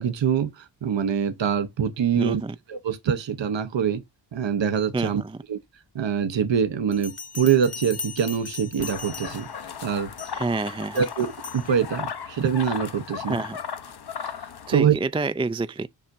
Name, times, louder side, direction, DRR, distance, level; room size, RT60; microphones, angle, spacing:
voice 1, 0.0-2.4 2.7-4.0 4.3-5.2 5.5-5.6 5.9-9.5 9.8-10.1 10.9-13.4 14.3-15.0, right 8 dB, 75° right, 0.9 m, -24 dB
voice 2, 2.1-2.6 4.9-5.4 10.3-11.0 13.2-13.6 14.7-15.9, right 3 dB, 15° right, 0.3 m, -28 dB
Bell, 6.9-9.6 10.2-10.5 11.0-11.7, left 5 dB, 35° left, 1.1 m, -38 dB
sound 1, 8.8-14.8, left 7 dB, 60° left, 0.9 m, -36 dB
7.2 x 5.7 x 2.6 m
wide cardioid pair, 85°, 44 cm